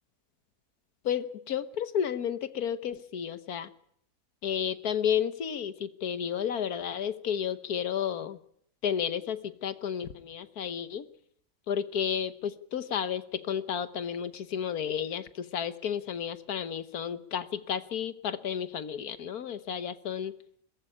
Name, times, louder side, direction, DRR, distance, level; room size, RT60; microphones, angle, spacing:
voice 1, 1.0-3.7 4.4-8.4 8.8-11.1 11.7-20.3, left 8 dB, 70° left, 13 dB, 1.5 m, -32 dB
21.0 x 14.5 x 10.0 m, 0.68 s
omnidirectional pair, 1.7 m